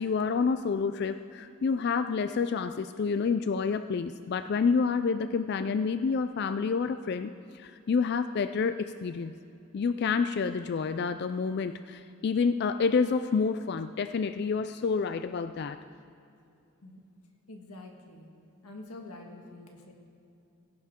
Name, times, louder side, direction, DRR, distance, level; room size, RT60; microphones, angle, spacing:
voice 1, 0.0-9.3 9.7-15.8, left 5 dB, 45° left, 11 dB, 0.3 m, -28 dB
voice 2, 17.5-18.3 18.6-19.9, left 2 dB, 85° left, 2 dB, 1.7 m, -46 dB
16.5 x 16.5 x 3.7 m, 2.6 s
head